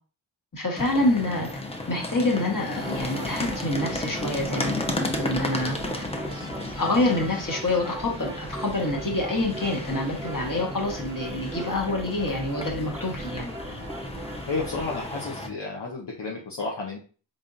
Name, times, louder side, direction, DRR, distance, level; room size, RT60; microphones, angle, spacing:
voice 1, 0.5-1.5 1.9-6.1 6.8-13.5, left 2 dB, 40° left, 0 dB, 1.5 m, -27 dB
sound 1, 0.8-15.5, left 1 dB, 15° left, 0.6 m, -34 dB
sound 2, 2.7-15.1, right 1 dB, 10° right, 0.9 m, -39 dB
voice 2, 14.5-17.0, left 3 dB, 60° left, -2 dB, 0.9 m, -32 dB
3.6 x 3.4 x 2.6 m, 0.37 s
cardioid pair, 45°, 47 cm